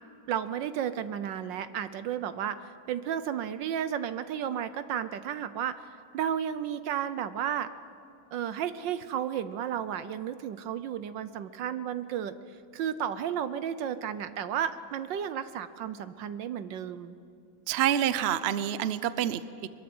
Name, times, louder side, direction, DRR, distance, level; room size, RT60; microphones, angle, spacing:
voice 1, 0.3-7.7 8.3-12.3 12.7-17.2, right 9 dB, 70° right, 12 dB, 1.3 m, -33 dB
voice 2, 17.7-19.7, right 10 dB, 85° right, 14 dB, 0.5 m, -27 dB
23.0 x 21.5 x 7.9 m, 2.4 s
omnidirectional pair, 2.2 m